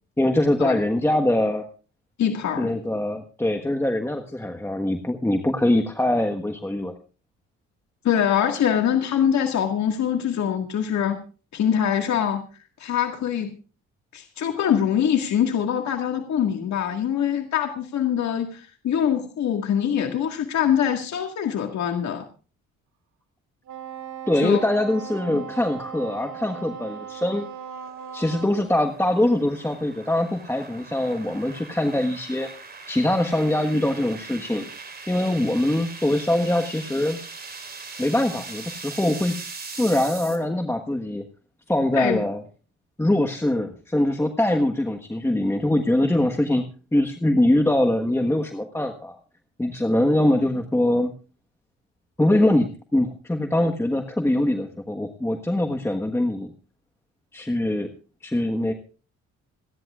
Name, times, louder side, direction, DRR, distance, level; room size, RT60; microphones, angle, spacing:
voice 1, 0.2-1.6 2.6-6.9 24.3-27.5 28.1-32.5 32.9-34.7 35.1-37.2 38.0-39.3 39.7-41.2 41.7-42.4 43.0-46.6 46.9-49.2 49.6-51.1 52.2-56.5 57.3-57.9 58.2-58.7, left 1 dB, 10° left, 4 dB, 1.4 m, -23 dB
voice 2, 2.2-2.7 8.0-11.2 11.5-12.4 12.8-13.5 14.1-22.3 24.3-24.6 25.3-25.5 41.9-42.2, left 9 dB, 65° left, 4 dB, 1.9 m, -23 dB
Wind instrument woodwind instrument, 23.7-28.7, right 8 dB, 70° right, 2.8 m, -38 dB
sound 1, 26.4-40.4, right 4 dB, 30° right, 4.0 m, -41 dB
27.5 x 10.5 x 2.4 m, 0.36 s
cardioid pair, 90°, 30 cm